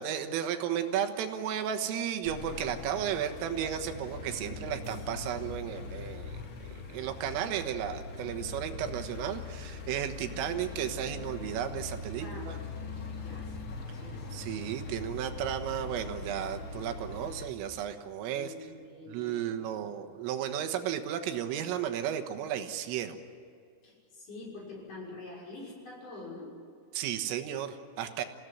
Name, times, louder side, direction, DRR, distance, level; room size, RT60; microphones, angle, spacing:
voice 1, 0.0-6.4 6.6-12.6 14.3-18.5 19.1-23.2 26.9-28.2, right 9 dB, 85° right, 6 dB, 3.9 m, -34 dB
sound 1, 2.2-17.5, left 3 dB, 65° left, 1.3 m, -41 dB
voice 2, 10.2-10.6 12.2-13.0 13.2-13.6 14.0-14.3 18.3-19.8 23.8-26.6, left 2 dB, 40° left, -3 dB, 7.2 m, -46 dB
29.0 x 16.5 x 9.7 m, 2.3 s
omnidirectional pair, 5.8 m